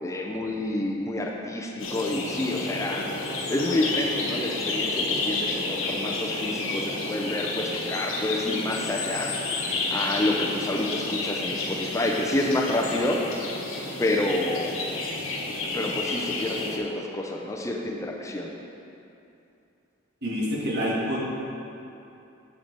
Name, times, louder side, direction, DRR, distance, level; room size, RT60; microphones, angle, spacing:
voice 1, 0.0-3.1 3.5-9.3 9.9-13.2 14.0-14.8 15.7-18.5, left 1 dB, 15° left, 0 dB, 0.5 m, -28 dB
sound 1, 1.8-16.8, left 3 dB, 80° left, 1.1 m, -30 dB
voice 2, 20.2-21.2, equal, 55° right, -4 dB, 1.7 m, -27 dB
7.3 x 6.8 x 4.6 m, 2.8 s
head